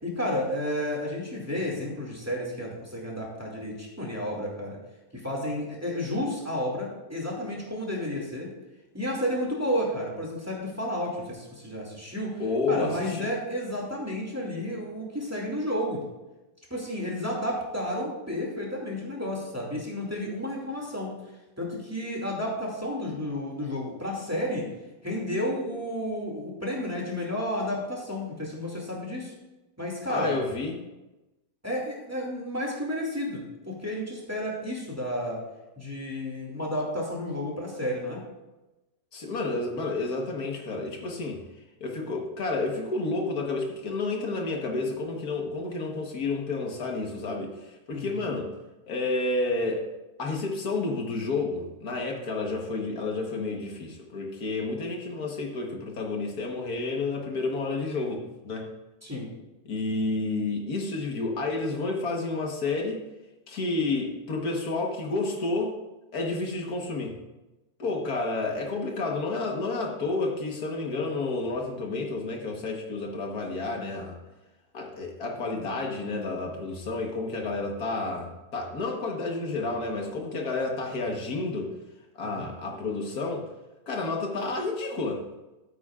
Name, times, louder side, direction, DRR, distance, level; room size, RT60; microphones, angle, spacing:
voice 1, 0.0-4.8 5.1-8.5 8.9-12.4 12.7-16.0 16.7-21.2 21.6-24.7 25.0-29.3 29.8-30.4 31.6-35.4 35.8-38.2 47.9-48.2 59.0-59.3 82.2-82.5, left 1 dB, 10° right, -3 dB, 2.3 m, -31 dB
voice 2, 12.4-13.3 30.1-30.7 39.1-41.4 41.8-48.5 48.9-49.9 50.2-58.7 59.7-63.0 63.5-65.8 66.1-67.1 67.8-74.2 74.7-81.7 82.2-83.5 83.9-85.2, left 3 dB, 75° left, 1 dB, 1.9 m, -30 dB
14.0 x 8.6 x 2.5 m, 1.0 s
omnidirectional pair, 1.6 m